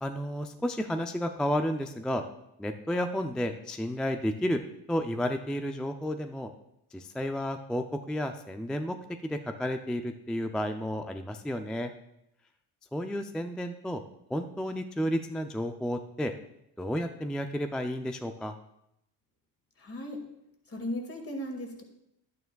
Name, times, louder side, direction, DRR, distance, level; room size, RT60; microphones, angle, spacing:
voice 1, 0.0-2.2 2.6-4.6 4.9-6.5 6.9-9.0 9.2-11.9 12.9-14.0 14.3-16.3 16.8-18.6, equal, ahead, 7 dB, 0.3 m, -32 dB
voice 2, 19.8-20.2 20.7-21.8, left 1 dB, 30° left, 3 dB, 2.1 m, -36 dB
10.5 x 9.2 x 2.3 m, 0.81 s
supercardioid pair, 75°, 46 cm